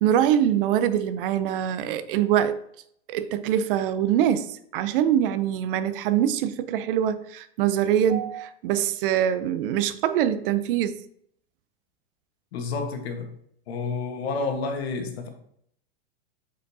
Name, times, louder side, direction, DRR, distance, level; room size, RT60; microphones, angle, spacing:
voice 1, 0.0-2.6 3.1-11.0, right 10 dB, 60° right, 0.6 m, -24 dB
voice 2, 12.5-13.3 13.7-15.3, left 4 dB, 80° left, 1.4 m, -29 dB
6.7 x 5.1 x 2.7 m
supercardioid pair, 140°, 31 cm